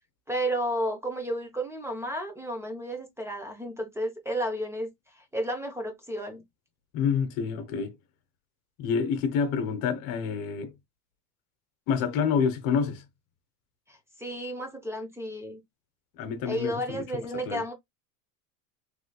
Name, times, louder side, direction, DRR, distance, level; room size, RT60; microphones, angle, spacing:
voice 1, 0.3-4.9 5.1-6.4 13.9-15.6 16.4-17.7, right 1 dB, 5° right, 0.8 m, -32 dB
voice 2, 6.9-7.9 8.8-10.7 11.9-13.0 16.2-17.0 17.5-17.6, left 6 dB, 55° left, 1.0 m, -27 dB
3.3 x 3.1 x 2.2 m
supercardioid pair, 120°, 42 cm